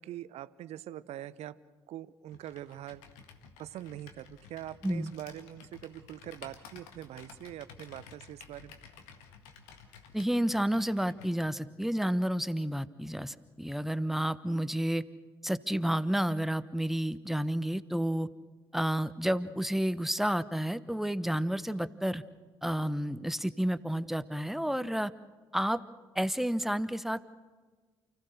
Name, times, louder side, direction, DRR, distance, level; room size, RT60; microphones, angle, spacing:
voice 1, 0.0-1.6 1.9-3.0 3.6-8.8, right 13 dB, 60° right, 18 dB, 0.8 m, -43 dB
Computer keyboard, 2.3-11.4, left 6 dB, 70° left, 1.8 m, -53 dB
voice 2, 10.1-15.0 15.4-18.3 18.7-22.2 22.6-25.1 25.5-25.8 26.1-27.2, equal, ahead, 14 dB, 1.0 m, -30 dB
29.5 x 15.5 x 6.6 m, 1.4 s
figure-of-eight pair, 45°, 13 cm